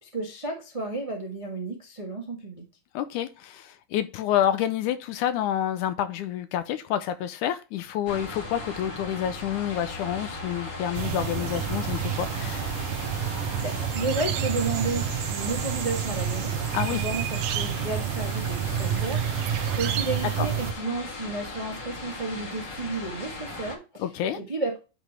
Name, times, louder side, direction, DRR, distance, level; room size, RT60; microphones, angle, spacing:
voice 1, 0.0-2.6 13.6-16.5 16.9-24.1 24.3-24.8, right 3 dB, 35° right, 0.5 m, -32 dB
voice 2, 2.9-12.9 16.7-17.0 20.4-20.5 24.0-24.4, left 10 dB, 80° left, 1.9 m, -28 dB
sound 1, 8.1-23.8, left 2 dB, 40° left, 2.2 m, -38 dB
sound 2, 10.9-20.7, right 9 dB, 75° right, 2.2 m, -29 dB
9.9 x 4.2 x 3.3 m
omnidirectional pair, 3.8 m